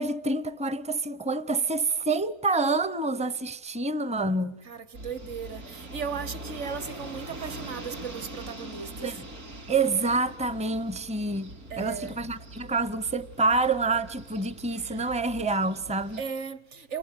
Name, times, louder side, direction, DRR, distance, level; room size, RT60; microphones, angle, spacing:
voice 1, 0.0-4.6 9.0-9.2 9.7-16.2, right 3 dB, 5° right, 0.6 m, -27 dB
voice 2, 4.6-9.2 11.7-12.1 16.2-17.0, right 6 dB, 50° right, 1.5 m, -36 dB
sound 1, 4.9-16.2, right 1 dB, 70° right, 4.8 m, -43 dB
29.0 x 26.0 x 7.8 m
omnidirectional pair, 1.6 m